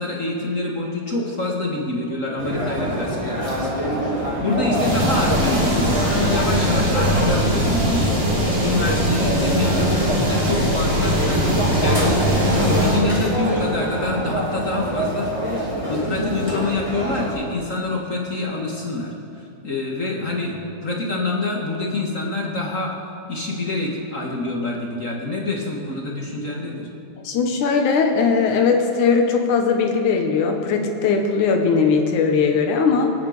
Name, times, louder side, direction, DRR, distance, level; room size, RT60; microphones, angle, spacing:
voice 1, 0.0-8.2 8.6-19.1 19.6-22.9 23.3-26.9, left 2 dB, 35° left, -2 dB, 1.4 m, -26 dB
sound 1, 2.4-17.3, equal, 10° right, 2.0 m, -25 dB
sound 2, 4.7-13.0, equal, 70° right, 5.4 m, -21 dB
voice 2, 27.2-33.1, left 5 dB, 75° left, 3 dB, 2.9 m, -19 dB
26.0 x 9.4 x 5.1 m, 2.6 s
omnidirectional pair, 3.6 m